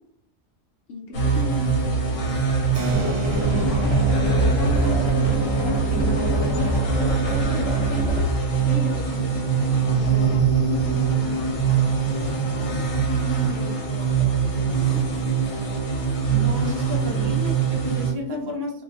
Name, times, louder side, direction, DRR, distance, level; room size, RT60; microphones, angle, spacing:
voice 1, 0.9-2.4 2.7-4.0 4.3-7.9 8.6-15.1 18.2-18.5, left 1 dB, 65° left, 1 dB, 1.1 m, -35 dB
sound 1, 1.1-18.1, right 6 dB, 85° left, 1.3 m, -23 dB
Keyboard (musical), 2.7-8.8, right 5 dB, 75° right, 0.9 m, -39 dB
sound 2, 2.9-8.4, equal, 25° left, 0.9 m, -25 dB
voice 2, 16.3-18.7, left 1 dB, 35° right, 0 dB, 0.4 m, -31 dB
2.7 x 2.2 x 4.0 m, 0.71 s
omnidirectional pair, 1.3 m